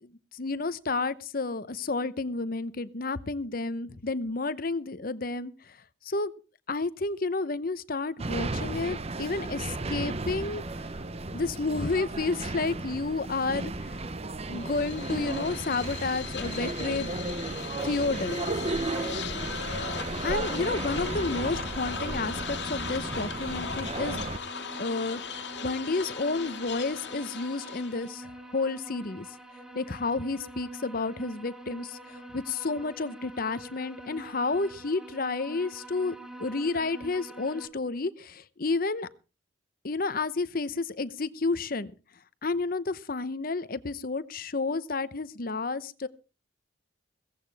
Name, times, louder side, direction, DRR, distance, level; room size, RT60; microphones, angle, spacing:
voice 1, 0.0-5.8 6.0-6.3 6.7-10.6 11.3-14.0 14.5-17.2 17.8-18.7 20.2-24.3 24.8-29.3 29.7-36.1 36.4-39.1 39.8-41.9 42.4-46.1, left 3 dB, 50° left, 14 dB, 0.8 m, -31 dB
sound 1, 8.2-24.4, right 2 dB, 35° right, 0.8 m, -34 dB
sound 2, 14.5-28.1, left 6 dB, 65° left, 2.0 m, -38 dB
sound 3, 19.8-37.7, right 1 dB, 5° right, 2.0 m, -45 dB
16.5 x 15.0 x 3.4 m, 0.34 s
head